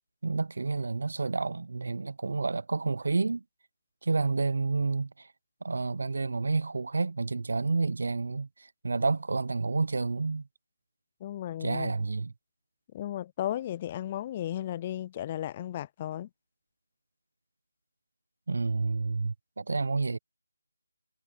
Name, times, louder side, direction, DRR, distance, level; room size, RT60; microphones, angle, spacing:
voice 1, 0.2-3.4 4.0-5.3 5.6-10.5 11.6-12.3 18.5-20.2, right 3 dB, 60° right, 0.8 m, -29 dB
voice 2, 11.2-11.9 12.9-16.3, left 12 dB, 20° left, 0.3 m, -35 dB
figure-of-eight pair, 165°, 0 cm